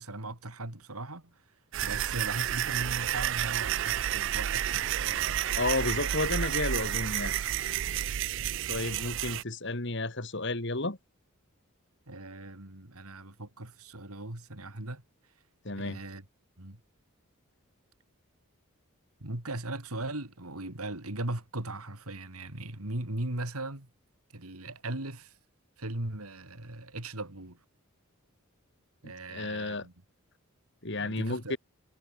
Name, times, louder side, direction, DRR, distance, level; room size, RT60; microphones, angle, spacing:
voice 1, 0.0-1.4 1.8-5.4 12.1-15.0 15.8-16.2 16.6-16.8 19.2-23.9 24.3-25.3 25.8-27.6 29.0-29.9 31.0-31.6, right 2 dB, 85° right, 3.4 m, -38 dB
sound 1, 1.7-9.4, right 11 dB, 55° right, 0.4 m, -30 dB
voice 2, 5.5-7.3 8.7-11.0 15.6-16.0 29.3-29.9 30.8-31.6, left 2 dB, 55° left, 2.4 m, -32 dB
head